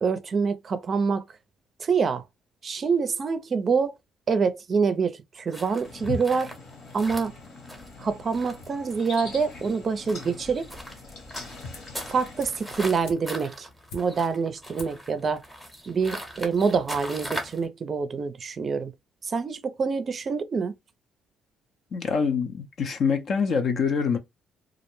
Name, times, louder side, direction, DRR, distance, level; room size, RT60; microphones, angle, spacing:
voice 1, 0.0-1.2 1.8-2.2 2.6-3.9 4.3-6.5 6.9-7.3 8.0-10.7 12.1-13.7 13.9-15.4 15.9-18.9 19.2-20.7, right 5 dB, 40° right, 0.4 m, -26 dB
sound 1, 5.5-17.7, equal, 5° left, 0.8 m, -40 dB
sound 2, 5.8-12.8, left 3 dB, 70° left, 1.3 m, -41 dB
sound 3, 11.7-12.0 12.4-14.4 14.7-15.1 15.4-15.5, left 3 dB, 85° left, 0.8 m, -46 dB
voice 2, 21.9-24.2, left 5 dB, 55° left, 0.5 m, -25 dB
2.4 x 2.0 x 3.0 m
cardioid pair, 95°, 0 cm